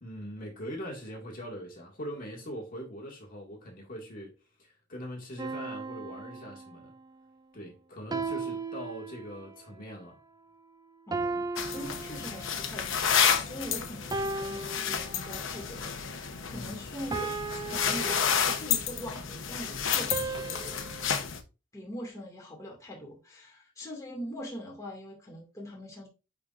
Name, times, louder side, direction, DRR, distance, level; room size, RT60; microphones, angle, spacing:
voice 1, 0.0-4.3 4.6-6.9 7.5-10.2 16.5-16.8, equal, 40° left, 2.0 m, -42 dB
sound 1, 5.4-7.0 8.1-9.6 11.1-12.8 14.1-15.6 17.1-18.9 20.1-21.2, right 3 dB, 20° right, 0.4 m, -36 dB
voice 2, 11.1-20.9 21.7-26.1, equal, 15° left, 2.1 m, -42 dB
sound 2, 11.6-21.4, left 7 dB, 65° left, 0.9 m, -30 dB
9.9 x 4.1 x 2.5 m
head